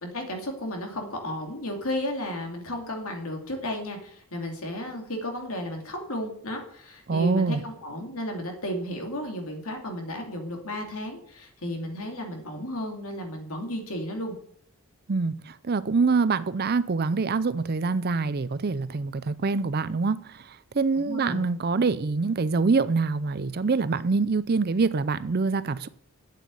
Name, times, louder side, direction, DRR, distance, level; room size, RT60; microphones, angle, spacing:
voice 1, 0.0-14.3 20.9-21.4, left 1 dB, 70° left, 2.6 m, -33 dB
voice 2, 7.1-7.6 15.1-25.9, right 4 dB, 45° right, 0.5 m, -25 dB
8.3 x 8.0 x 8.5 m
head